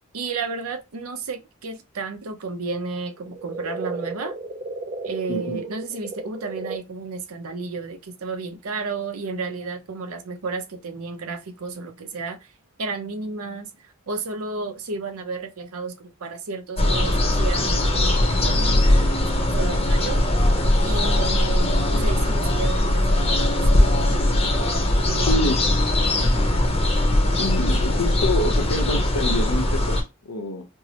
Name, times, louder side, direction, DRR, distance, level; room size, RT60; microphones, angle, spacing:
voice 1, 0.1-4.4 5.0-12.5 12.8-20.2 20.9-24.2 25.1-25.6 26.2-26.6, right 4 dB, 80° right, 0.6 m, -32 dB
sound 1, 3.1-6.8, right 3 dB, 35° right, 0.4 m, -34 dB
voice 2, 5.3-5.6 25.2-25.6 27.3-30.7, left 1 dB, 85° left, 0.8 m, -27 dB
sound 2, 16.8-30.0, left 1 dB, 25° left, 0.7 m, -20 dB
4.5 x 2.1 x 2.8 m
head